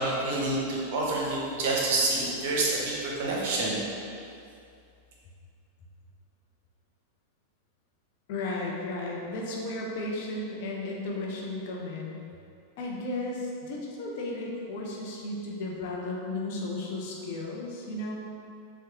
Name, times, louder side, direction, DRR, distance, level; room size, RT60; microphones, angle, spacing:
voice 1, 0.0-3.8, right 2 dB, 50° right, -4 dB, 0.7 m, -28 dB
voice 2, 8.3-12.2 12.8-18.2, left 2 dB, 50° left, -2 dB, 0.6 m, -34 dB
4.5 x 2.3 x 2.9 m, 2.5 s
figure-of-eight pair, 90°, 0 cm